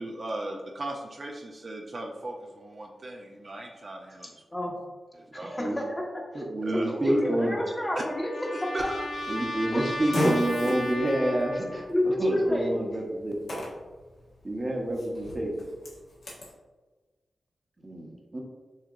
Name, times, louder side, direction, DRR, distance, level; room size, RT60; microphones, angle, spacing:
voice 1, 0.0-4.4 5.1-5.5 6.6-7.2 8.7-9.0, right 1 dB, 50° right, 0 dB, 0.5 m, -37 dB
voice 2, 5.3-6.0 6.3-8.9 9.7-9.9 11.9-13.0, left 1 dB, 20° left, -1 dB, 1.0 m, -30 dB
voice 3, 6.3-7.6 9.3-13.7 14.4-15.5 17.8-18.4, right 1 dB, 35° right, 0 dB, 0.9 m, -28 dB
Trumpet, 7.2-12.0, left 1 dB, 60° left, 0.7 m, -36 dB
Fart, 8.8-16.5, equal, 80° left, 1.4 m, -36 dB
6.5 x 2.8 x 2.5 m, 1.3 s
cardioid pair, 70°, 0 cm